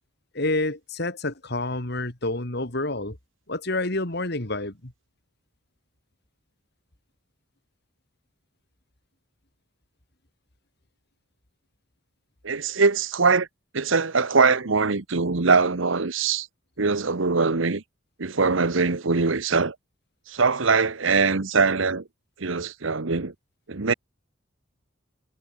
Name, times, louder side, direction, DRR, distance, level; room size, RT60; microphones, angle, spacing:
voice 1, 0.3-3.2 3.5-4.9, left 2 dB, 55° left, 2.8 m, -28 dB
voice 2, 12.4-13.5 13.7-16.5 16.8-17.8 18.2-19.7 20.3-22.0 22.4-23.3 23.7-23.9, right 4 dB, 75° right, 1.1 m, -22 dB
head